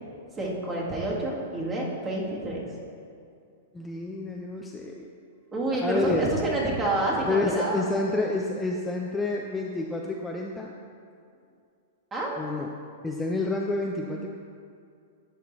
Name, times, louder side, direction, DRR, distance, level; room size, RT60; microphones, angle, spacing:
voice 1, 0.3-2.6 5.5-7.9 12.1-12.3, right 2 dB, 25° right, -3 dB, 1.7 m, -28 dB
voice 2, 3.7-5.1 5.8-6.3 7.2-10.7 12.4-12.7 13.0-14.3, left 2 dB, 10° left, 0 dB, 0.4 m, -29 dB
10.5 x 4.6 x 3.1 m, 2.4 s
hypercardioid pair, 115°, 0 cm